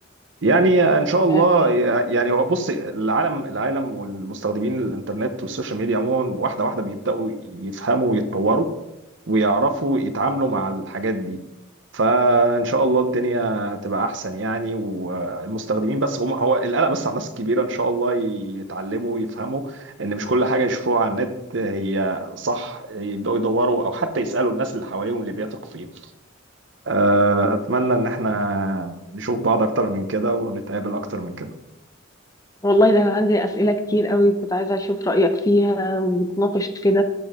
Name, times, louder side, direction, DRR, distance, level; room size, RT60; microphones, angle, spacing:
voice 1, 0.4-8.7 9.3-11.4 11.9-25.9 26.9-31.5, right 2 dB, 65° right, 9 dB, 0.8 m, -22 dB
voice 2, 32.6-37.0, left 1 dB, 15° left, 7 dB, 0.6 m, -19 dB
12.0 x 5.5 x 3.6 m, 0.92 s
head